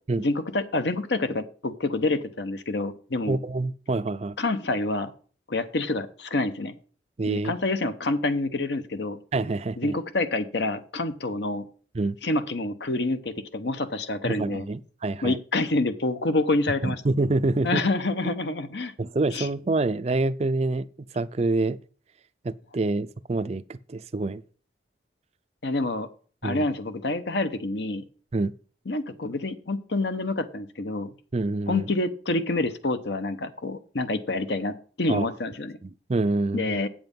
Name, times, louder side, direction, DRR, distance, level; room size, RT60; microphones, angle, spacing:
voice 1, 0.2-3.4 4.4-5.1 5.5-6.7 7.3-9.2 9.8-11.6 12.2-14.7 15.2-17.0 17.6-18.9 19.3-19.5 25.6-26.1 26.4-28.0 28.9-31.1 31.7-35.8 36.5-36.9, left 2 dB, 65° left, 0.9 m, -27 dB
voice 2, 3.3-4.4 7.2-7.5 9.3-10.0 11.9-12.2 14.2-15.4 16.8-17.8 19.0-20.9 21.1-21.8 22.4-24.4 26.4-26.7 28.3-28.5 31.3-31.9 35.1-35.3 35.8-36.8, right 2 dB, 35° right, 0.4 m, -26 dB
8.4 x 7.7 x 5.3 m
head